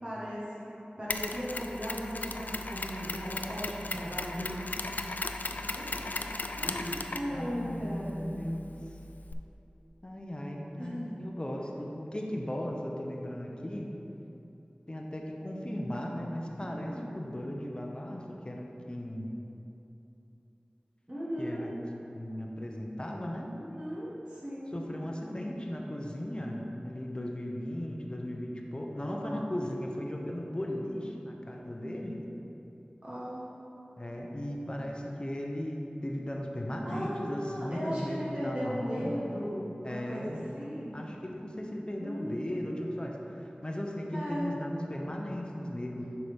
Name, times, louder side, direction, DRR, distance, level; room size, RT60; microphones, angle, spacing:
voice 1, 0.0-0.7 1.0-4.6 5.7-6.0 6.6-8.4 10.8-11.1 16.6-17.1 21.1-21.7 23.5-24.8 29.1-29.5 33.0-33.5 36.8-41.1 42.0-42.7 44.1-44.5, equal, 35° right, -9 dB, 1.4 m, -37 dB
Mechanisms, 1.1-9.3, left 2 dB, 65° left, 0.3 m, -37 dB
voice 2, 7.3-8.6 10.0-13.9 14.9-19.3 21.4-21.7 22.1-23.5 24.7-32.3 34.0-39.2 39.8-40.4 40.9-43.2 43.6-46.1, left 1 dB, 30° left, 0 dB, 0.8 m, -37 dB
6.6 x 5.8 x 3.6 m, 2.9 s
wide cardioid pair, 50°, 3 cm